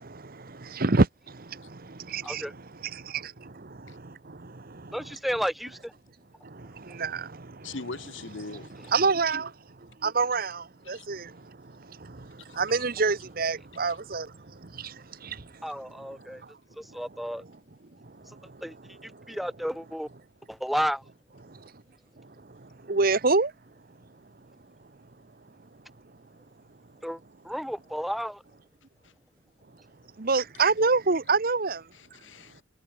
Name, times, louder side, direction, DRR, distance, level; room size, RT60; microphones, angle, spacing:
voice 1, 0.0-2.4 2.9-4.9 6.4-7.8 8.5-9.5 9.8-15.6 16.2-16.5 16.9-17.0 18.0-18.6 19.1-19.4 21.4-21.7 22.2-23.5 30.2-31.9, right 4 dB, 50° right, 1.1 m, -29 dB
voice 2, 2.2-2.5 4.9-5.9 15.6-16.4 16.7-17.4 18.3-18.4 18.6-18.8 19.0-20.1 20.5-21.0 27.0-28.4, equal, ahead, 1.3 m, -32 dB
voice 3, 7.6-8.9 10.9-11.1 12.5-12.6 29.0-29.1 31.9-32.6, left 3 dB, 80° left, 1.4 m, -41 dB
head